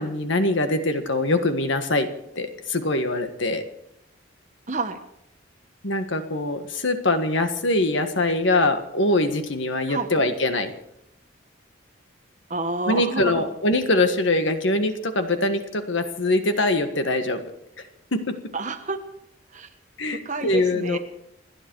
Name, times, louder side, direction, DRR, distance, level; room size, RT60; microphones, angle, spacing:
voice 1, 0.0-2.1 2.3-3.6 5.8-10.7 12.9-17.4 18.1-18.4 20.0-21.0, left 2 dB, 70° left, 7 dB, 1.6 m, -23 dB
voice 2, 4.7-5.0 9.9-10.1 12.5-13.5 18.5-19.0 19.5-19.7 20.1-21.0, right 3 dB, 35° right, 7 dB, 1.3 m, -29 dB
28.5 x 9.9 x 4.8 m, 0.80 s
head